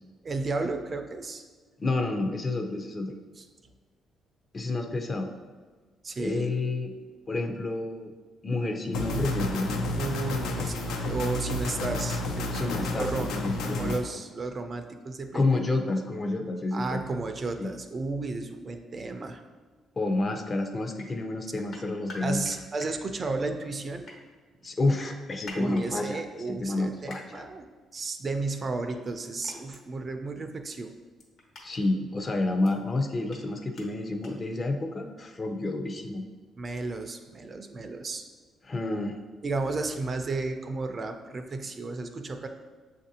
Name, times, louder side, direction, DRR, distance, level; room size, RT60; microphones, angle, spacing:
voice 1, 0.2-1.4 3.4-3.5 6.0-6.5 9.9-13.3 13.6-15.6 16.7-19.4 22.2-24.1 25.6-27.7 27.9-30.9 36.6-38.3 39.4-42.5, right 3 dB, 40° right, 6 dB, 0.4 m, -33 dB
voice 2, 1.8-3.2 4.5-5.3 6.2-6.9 7.3-8.1 8.4-9.8 12.5-14.0 15.3-17.0 17.6-17.7 20.0-22.4 24.6-26.2 26.5-27.4 31.6-36.2 38.6-39.2, left 2 dB, 35° left, 4 dB, 0.5 m, -29 dB
sound 1, 8.9-14.0, left 2 dB, 90° left, 0.4 m, -31 dB
sound 2, 21.0-21.1 21.7-22.9 23.8-24.2 25.0-25.8 27.1-27.2 28.9-29.1 29.4-29.8 30.7-30.8 31.2-31.7 32.3-32.7 33.3-33.4 33.7-33.9 34.2-34.3, left 2 dB, 60° left, 0.9 m, -45 dB
7.0 x 2.5 x 2.7 m, 1.4 s
cardioid pair, 90°, 0 cm